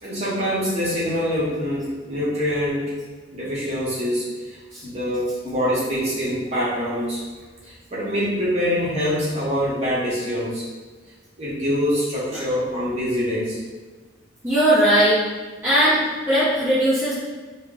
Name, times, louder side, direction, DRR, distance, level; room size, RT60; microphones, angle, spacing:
voice 1, 0.0-2.9 3.3-7.2 7.6-10.6 11.4-13.6, equal, 35° right, -8 dB, 0.9 m, -25 dB
voice 2, 14.4-15.2 15.6-16.0 16.3-17.1, right 1 dB, 15° right, -13 dB, 0.7 m, -18 dB
4.2 x 2.0 x 2.4 m, 1.4 s
head